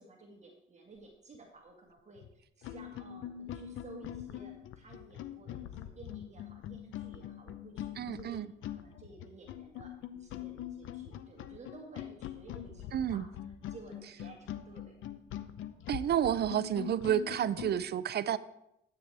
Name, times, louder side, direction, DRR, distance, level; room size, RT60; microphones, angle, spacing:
voice 1, 0.0-2.2 2.6-8.4 8.7-15.0 17.2-17.5, right 3 dB, 35° right, 0 dB, 1.7 m, -54 dB
sound 1, 2.2-2.3 2.6-17.8, left 11 dB, 85° left, 0.7 m, -43 dB
voice 2, 8.0-8.5 12.9-13.3 15.9-18.4, right 10 dB, 55° right, 16 dB, 0.5 m, -30 dB
12.5 x 8.8 x 3.4 m, 0.82 s
cardioid pair, 90°, 20 cm